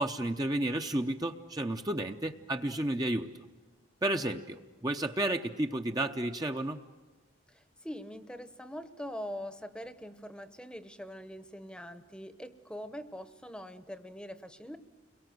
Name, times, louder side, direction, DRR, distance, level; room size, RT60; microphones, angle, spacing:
voice 1, 0.0-3.3 4.0-6.8, right 1 dB, 20° right, 5 dB, 0.7 m, -32 dB
voice 2, 7.5-14.8, equal, 5° left, 11 dB, 1.0 m, -43 dB
30.0 x 22.5 x 7.8 m, 1.3 s
head